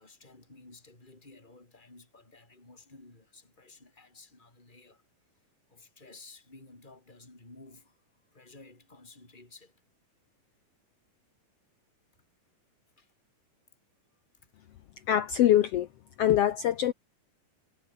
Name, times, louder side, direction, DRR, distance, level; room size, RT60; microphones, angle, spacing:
voice 1, 0.0-5.0 5.7-8.0 8.3-9.8 13.0-13.1 14.4-14.5, left 3 dB, 15° left, 5.3 m, -54 dB
voice 2, 15.1-15.9 16.2-16.9, left 11 dB, 85° left, 1.3 m, -23 dB
omnidirectional pair, 3.9 m